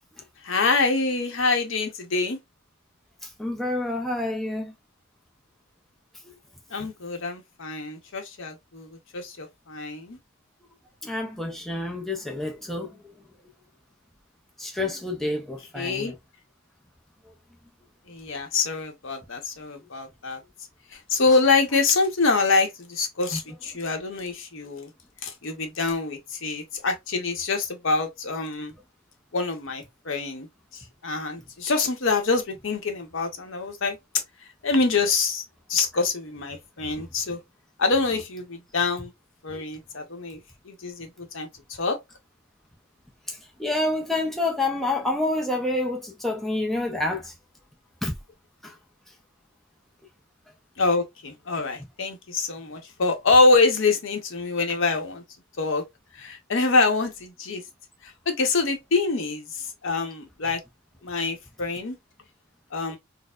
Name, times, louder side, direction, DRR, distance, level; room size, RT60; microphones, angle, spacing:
voice 1, 0.4-2.4 6.7-10.2 15.3-15.4 15.7-16.1 18.1-20.4 20.9-24.9 25.2-28.7 29.3-30.5 30.7-34.0 34.6-35.4 35.7-37.4 37.8-39.1 39.4-40.4 40.6-42.0 50.8-55.2 55.6-55.8 56.1-57.6 58.0-60.6 61.0-62.0 62.7-63.0, left 3 dB, 65° left, 0.8 m, -25 dB
voice 2, 3.2-4.7 11.0-13.1 14.6-16.1 23.3-23.4 43.3-47.3 48.0-48.1 48.6-48.8, left 2 dB, ahead, 0.4 m, -28 dB
4.2 x 2.0 x 2.3 m
head